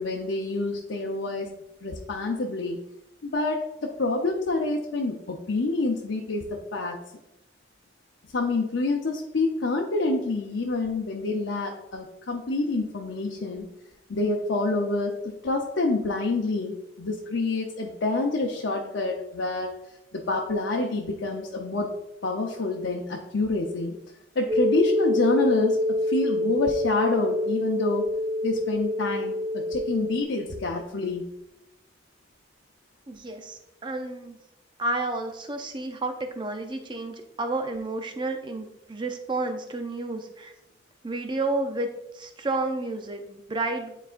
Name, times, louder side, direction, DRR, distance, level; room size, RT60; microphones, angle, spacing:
voice 1, 0.0-1.5 1.8-2.8 3.2-7.0 8.3-13.6 14.1-15.1 15.4-19.7 20.1-21.9 22.2-23.9 24.4-25.8 26.1-28.0 28.4-31.3, left 2 dB, 85° left, -1 dB, 0.7 m, -27 dB
sound 1, 24.5-30.2, left 1 dB, 65° right, 1.5 m, -26 dB
voice 2, 33.1-34.4 34.8-40.5 41.0-41.9 42.1-44.0, right 2 dB, 25° right, 5 dB, 0.6 m, -31 dB
9.2 x 4.1 x 2.5 m, 0.88 s
head